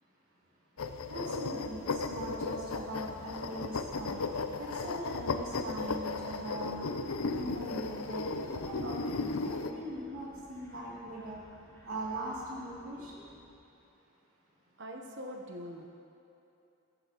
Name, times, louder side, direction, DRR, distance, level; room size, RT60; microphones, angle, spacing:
sound 1, 0.8-9.7, left 3 dB, 90° left, 0.6 m, -35 dB
voice 1, 1.1-4.2 4.6-6.9 7.3-11.4 11.8-13.2, right 1 dB, 80° right, -6 dB, 2.7 m, -41 dB
sound 2, 2.3-13.5, equal, 10° left, 1.6 m, -60 dB
sound 3, 8.7-9.8, equal, 30° left, 1.7 m, -51 dB
voice 2, 14.8-15.9, equal, 55° right, 2 dB, 0.9 m, -44 dB
15.0 x 13.0 x 3.0 m, 2.8 s
head